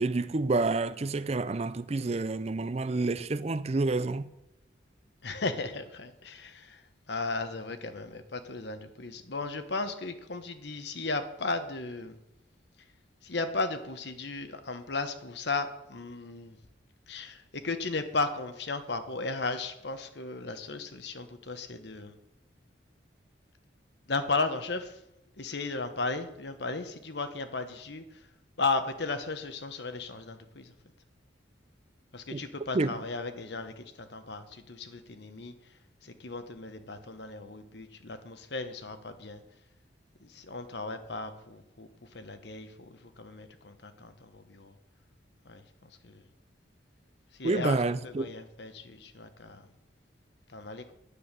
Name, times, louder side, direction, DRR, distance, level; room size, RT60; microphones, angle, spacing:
voice 1, 0.0-4.3 32.3-32.4 32.7-33.0 47.4-48.3, right 3 dB, 35° right, 0.5 m, -29 dB
voice 2, 5.2-12.2 13.2-16.6 17.1-22.2 24.1-25.0 25.4-28.3 28.6-30.7 32.1-35.7 36.0-39.4 40.2-44.7 45.4-46.2 47.3-49.7 50.5-50.9, left 3 dB, 60° left, 1.1 m, -35 dB
10.0 x 9.4 x 6.7 m
head